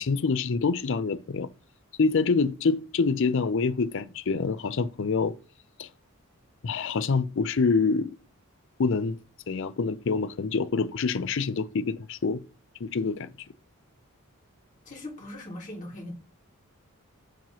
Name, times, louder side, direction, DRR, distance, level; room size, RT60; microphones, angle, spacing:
voice 1, 0.0-1.5 2.0-5.3 5.8-5.9 6.6-8.1 8.8-9.2 9.5-12.4 12.8-13.3, left 4 dB, 60° left, 0.5 m, -26 dB
voice 2, 14.8-16.1, left 1 dB, 35° left, 1.7 m, -40 dB
6.9 x 3.0 x 5.7 m
head